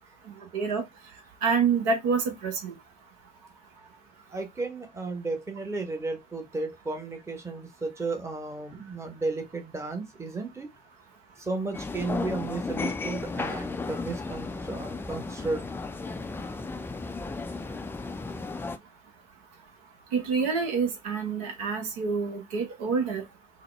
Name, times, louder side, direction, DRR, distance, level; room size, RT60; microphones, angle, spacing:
voice 1, 0.3-0.8 1.4-2.7 20.1-23.2, right 5 dB, 60° right, 0.9 m, -27 dB
voice 2, 4.3-10.7 11.4-15.7, right 3 dB, 15° right, 1.0 m, -34 dB
sound 1, 11.7-18.8, left 3 dB, 10° left, 0.4 m, -34 dB
4.0 x 2.1 x 3.1 m
figure-of-eight pair, 60°, 20 cm